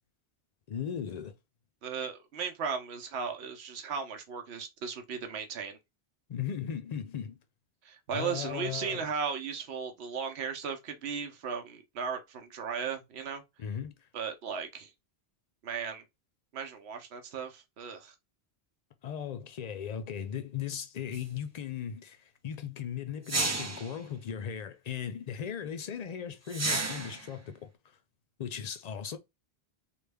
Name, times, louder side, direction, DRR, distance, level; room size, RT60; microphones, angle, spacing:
voice 1, 0.7-1.3 6.3-7.4 8.1-9.1 13.6-13.9 19.0-27.7 28.4-29.2, left 8 dB, 55° left, 0.5 m, -37 dB
voice 2, 1.8-5.8 7.8-13.4 14.1-14.9 15.6-16.0 16.5-18.1, right 6 dB, 85° right, 1.0 m, -36 dB
sound 1, 21.1-21.2 23.3-23.9 26.5-27.3, right 2 dB, 25° right, 0.4 m, -31 dB
3.3 x 2.3 x 3.4 m
omnidirectional pair, 1.1 m